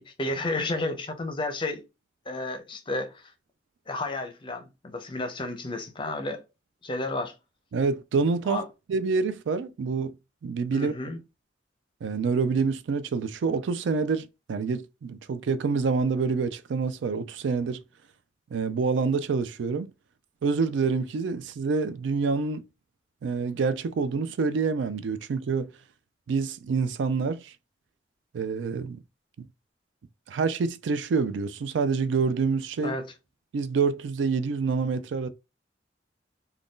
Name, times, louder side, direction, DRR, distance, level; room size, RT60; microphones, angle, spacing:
voice 1, 0.0-1.8 2.3-3.3 3.9-6.4 6.8-7.3 8.5-8.6 10.7-11.2 32.8-33.1, left 2 dB, 25° left, 0.6 m, -32 dB
voice 2, 7.7-8.6 8.9-10.1 10.4-10.9 12.0-17.8 18.5-19.9 20.4-22.6 23.2-25.7 26.3-27.5 28.3-29.0 29.4-29.5 30.3-33.0 33.5-35.3, right 4 dB, 80° right, 0.4 m, -27 dB
2.5 x 2.2 x 3.5 m
head